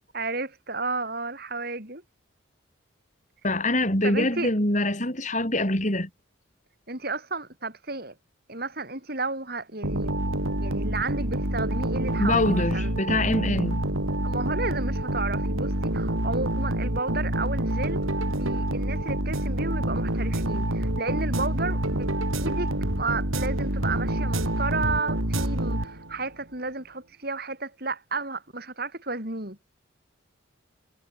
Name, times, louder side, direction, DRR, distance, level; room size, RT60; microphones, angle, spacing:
voice 1, 0.1-2.0 4.0-4.5 6.9-8.1 8.5-10.1 10.6-12.9 14.2-18.0 18.3-22.1 22.4-29.6, right 3 dB, 45° right, 7.2 m, -32 dB
voice 2, 3.4-6.1 12.2-13.8, left 1 dB, 35° left, 6.9 m, -24 dB
sound 1, 9.8-26.3, right 1 dB, 85° right, 3.8 m, -27 dB
head